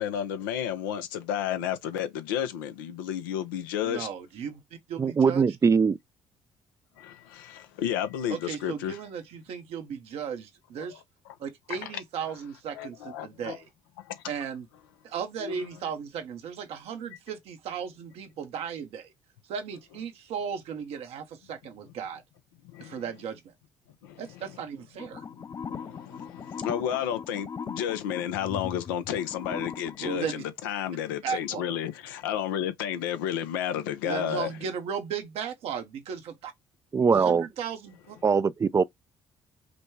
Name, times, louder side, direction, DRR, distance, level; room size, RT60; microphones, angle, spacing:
voice 1, 0.0-4.1 7.0-9.0 10.8-11.0 11.7-11.9 12.7-13.6 14.0-14.3 15.4-15.5 22.6-23.0 24.0-24.4 25.5-34.6, left 9 dB, 90° left, 0.7 m, -32 dB
voice 2, 3.8-4.6 4.9-5.5 8.3-11.0 11.4-13.7 14.3-14.7 15.0-19.1 19.5-22.2 22.8-23.5 24.2-25.2 30.0-30.3 31.2-31.6 34.0-36.5 37.1-38.2, right 7 dB, 70° right, 1.0 m, -36 dB
voice 3, 5.0-6.0 36.9-37.5 38.2-38.8, right 5 dB, 30° right, 0.4 m, -22 dB
sound 1, 25.0-30.3, left 6 dB, 30° left, 0.4 m, -39 dB
5.1 x 2.3 x 3.2 m
hypercardioid pair, 60°, 11 cm